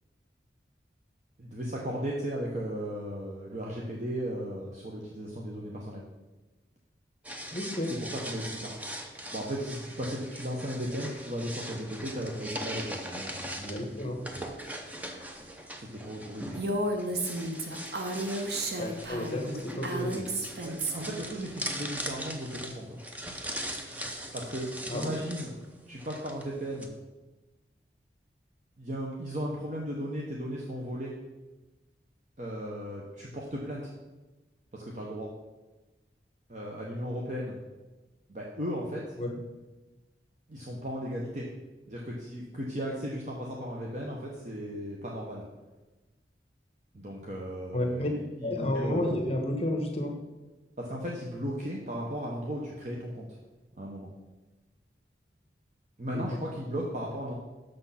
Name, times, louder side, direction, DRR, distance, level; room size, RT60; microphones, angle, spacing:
voice 1, 1.4-6.0 7.9-8.8 9.3-13.5 15.8-16.6 20.6-23.0 24.3-25.5 25.9-26.9 28.8-31.1 32.4-33.9 34.7-35.3 36.5-37.6 38.3-39.1 40.5-41.5 41.9-45.4 46.9-49.2 50.8-53.4 53.8-54.1 56.0-57.3, equal, 40° right, -3 dB, 0.9 m, -36 dB
sound 1, 7.3-26.9, equal, 10° right, 0.6 m, -41 dB
voice 2, 7.5-7.9 13.6-14.2 18.8-20.3 24.9-25.1 39.2-39.3 47.7-48.1 48.4-50.1 56.1-56.4, left 1 dB, 35° left, 3 dB, 1.0 m, -31 dB
Female speech woman speaking, 16.5-21.2, right 1 dB, 65° right, 1.0 m, -33 dB
6.7 x 6.2 x 5.7 m, 1.2 s
head